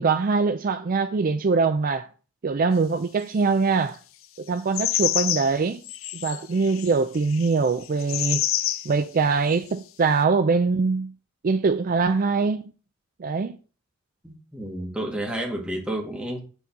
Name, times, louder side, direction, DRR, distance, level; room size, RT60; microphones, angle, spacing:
voice 1, 0.0-2.1 2.4-4.0 4.5-5.8 6.1-8.5 8.9-11.1 11.4-12.7 13.2-13.6, right 4 dB, 45° right, 0.4 m, -23 dB
sound 1, 4.7-5.6 5.8-8.9 9.5-9.6, left 13 dB, 80° left, 0.5 m, -27 dB
voice 2, 14.2-16.4, right 1 dB, 5° right, 1.9 m, -30 dB
6.9 x 4.1 x 5.9 m
head